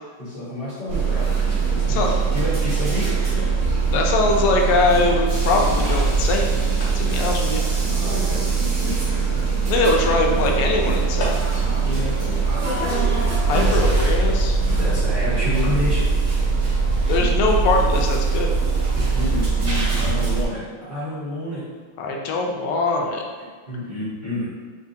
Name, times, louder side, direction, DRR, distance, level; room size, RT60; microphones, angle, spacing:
voice 1, 0.2-3.6 3.9-4.0 6.9-7.3 7.9-9.4 11.7-12.6 13.5-14.1 14.8-16.1 17.0-17.3 19.1-20.6 20.9-21.6 23.7-24.5, left 1 dB, 30° right, -14 dB, 1.1 m, -30 dB
sound 1, 0.9-20.4, right 4 dB, 85° right, 0.6 m, -21 dB
voice 2, 1.8-2.2 3.9-6.5 6.9-7.6 9.7-11.4 13.5-14.6 17.1-18.5 22.0-23.2, left 3 dB, 90° left, 1 dB, 1.5 m, -22 dB
sound 2, 5.4-11.8, left 1 dB, 75° left, 1.6 m, -40 dB
4.5 x 2.4 x 2.7 m, 1.5 s
omnidirectional pair, 2.4 m